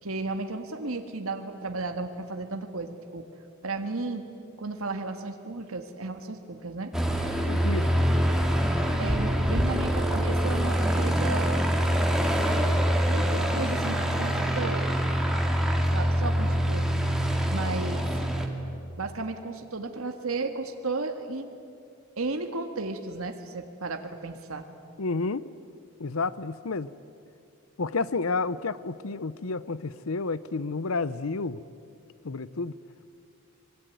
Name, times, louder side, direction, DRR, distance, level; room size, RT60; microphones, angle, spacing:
voice 1, 0.0-3.2 3.6-4.2 4.6-6.9 9.0-11.7 13.1-14.9 15.9-16.9 17.5-18.2 19.0-21.5 22.2-24.7, right 3 dB, 80° right, 6 dB, 1.7 m, -34 dB
Aircraft, 6.9-18.5, equal, ahead, 2.2 m, -25 dB
voice 2, 7.5-7.9 25.0-25.5 26.0-26.9 27.8-31.6 32.2-32.8, left 3 dB, 80° left, 17 dB, 0.8 m, -30 dB
24.5 x 22.0 x 9.2 m, 2.4 s
head